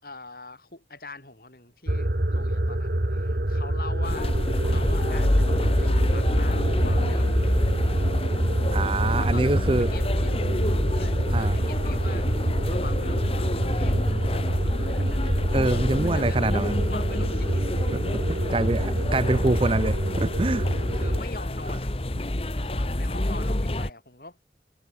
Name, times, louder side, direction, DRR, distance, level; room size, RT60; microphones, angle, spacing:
voice 1, 0.0-4.3 4.6-7.5 9.0-10.4 10.9-12.3 12.7-17.7 20.6-24.6, left 2 dB, 55° left, 7.0 m, -43 dB
sound 1, 1.9-21.2, right 1 dB, 55° right, 1.9 m, -26 dB
sound 2, 4.0-23.9, left 1 dB, 35° left, 1.2 m, -27 dB
voice 2, 8.7-9.9 11.3-11.6 15.5-16.8 18.3-20.7, right 2 dB, 30° right, 0.7 m, -25 dB
head